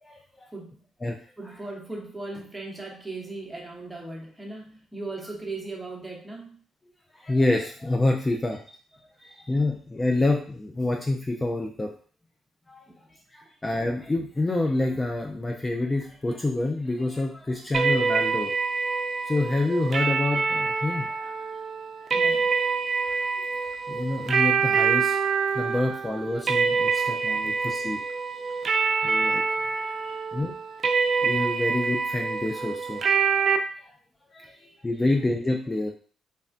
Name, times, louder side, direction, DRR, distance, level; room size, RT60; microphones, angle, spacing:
voice 1, 0.0-0.5 1.0-1.2 7.1-8.6 9.5-11.9 12.7-12.9 13.3-18.6 19.3-21.3 23.0-23.2 23.9-25.3 25.5-28.0 29.0-29.4 30.3-30.5 31.2-33.0 33.8-33.9 34.3-35.9, left 2 dB, 20° left, 1 dB, 0.4 m, -27 dB
voice 2, 1.4-6.6 9.2-9.5 12.9-13.2 22.1-22.5 26.4-29.1 29.8-30.3 34.5-34.6, right 2 dB, 10° right, -2 dB, 0.9 m, -40 dB
sound 1, 17.7-33.6, right 5 dB, 50° right, 0.4 m, -26 dB
3.3 x 2.1 x 2.5 m, 0.43 s
cardioid pair, 90°, 0 cm